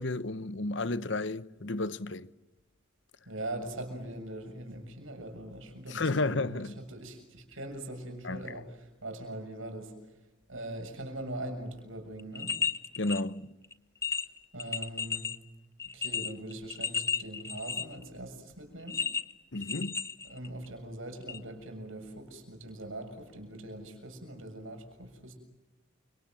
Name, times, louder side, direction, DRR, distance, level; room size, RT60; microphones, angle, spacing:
voice 1, 0.0-2.3 5.9-6.8 8.2-8.5 13.0-13.5 19.5-20.0, left 2 dB, 60° left, 1.0 m, -32 dB
voice 2, 3.3-10.2 10.5-12.6 14.1-14.3 14.5-15.3 15.9-19.0 20.2-25.4, right 1 dB, 75° right, 7.0 m, -42 dB
sound 1, 12.2-13.2 13.6-13.7 14.0-15.4 15.8-18.0 18.9-20.7 21.3-21.4, left 5 dB, 15° left, 0.9 m, -33 dB
29.5 x 26.5 x 7.7 m
head